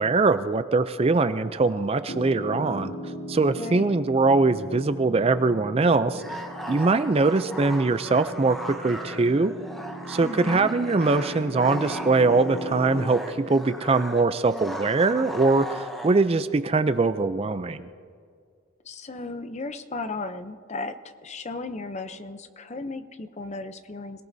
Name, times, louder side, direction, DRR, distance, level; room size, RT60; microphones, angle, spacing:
voice 1, 0.0-3.0 3.3-6.2 6.7-9.5 10.1-17.9, right 3 dB, 25° right, 12 dB, 0.4 m, -22 dB
Piano, 2.1-13.1, equal, 50° left, 2.3 m, -38 dB
voice 2, 3.6-4.0 10.2-10.7 18.8-24.2, left 3 dB, 30° left, 10 dB, 0.6 m, -35 dB
sound 1, 6.1-16.3, equal, ahead, 1.0 m, -38 dB
26.0 x 18.0 x 2.7 m, 2.1 s
head